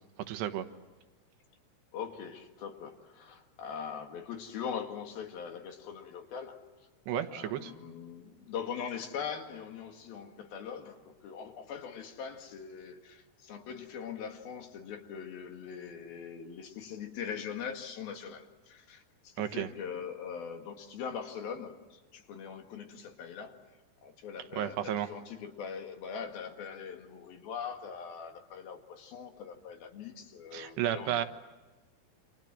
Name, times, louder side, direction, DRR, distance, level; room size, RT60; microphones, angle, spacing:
voice 1, 0.3-0.7 7.1-7.7 19.4-19.7 24.5-25.1 30.5-31.2, right 11 dB, 85° right, 9 dB, 3.4 m, -32 dB
voice 2, 1.9-6.6 7.3-23.6 24.0-31.3, left 7 dB, 65° left, 5 dB, 3.6 m, -42 dB
29.5 x 27.0 x 7.6 m, 1.2 s
omnidirectional pair, 4.8 m